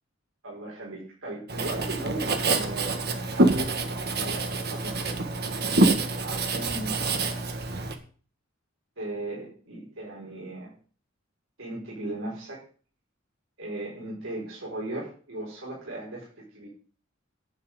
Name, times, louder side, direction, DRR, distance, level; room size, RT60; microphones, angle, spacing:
voice 1, 0.4-2.3 2.5-5.1 6.2-7.6 9.0-10.7 11.6-12.6 13.6-16.7, right 2 dB, 80° right, -5 dB, 5.2 m, -37 dB
Writing, 1.5-7.9, right 2 dB, 55° right, 1.7 m, -26 dB
11.0 x 5.9 x 9.0 m, 0.41 s
head